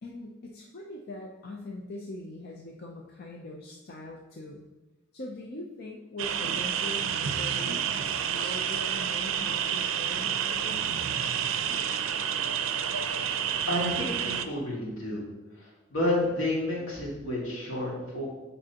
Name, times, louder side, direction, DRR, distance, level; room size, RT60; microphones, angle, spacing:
voice 1, 0.0-4.6 5.1-10.9, left 2 dB, 55° left, 0 dB, 0.6 m, -42 dB
sound 1, 6.2-14.5, right 8 dB, 90° right, 0.4 m, -29 dB
voice 2, 13.7-15.2 15.6-18.3, left 1 dB, 80° left, -4 dB, 2.1 m, -30 dB
7.4 x 5.3 x 2.9 m, 1.1 s
head